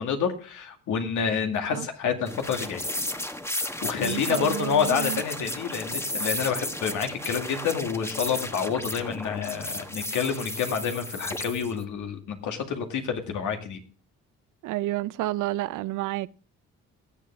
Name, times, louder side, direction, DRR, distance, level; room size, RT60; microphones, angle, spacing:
voice 1, 0.0-2.9 3.5-13.8, left 7 dB, 80° left, 2.3 m, -28 dB
sound 1, 2.3-11.8, left 1 dB, 10° left, 1.2 m, -34 dB
voice 2, 4.0-5.2 14.6-16.3, right 16 dB, 85° right, 0.6 m, -30 dB
18.0 x 7.5 x 3.5 m
cardioid pair, 90°, 30 cm